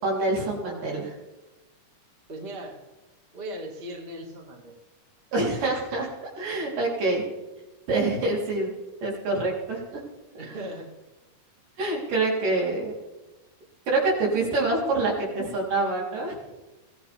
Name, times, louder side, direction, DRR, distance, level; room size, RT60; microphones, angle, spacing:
voice 1, 0.0-1.1 5.3-7.2 7.9-8.7 9.0-10.0 11.8-12.9 13.9-16.4, right 2 dB, 75° right, -3 dB, 5.5 m, -26 dB
voice 2, 2.3-2.8 3.3-4.8 10.4-10.9, right 1 dB, 20° right, 1 dB, 1.8 m, -38 dB
22.5 x 15.5 x 3.6 m, 1.1 s
omnidirectional pair, 3.9 m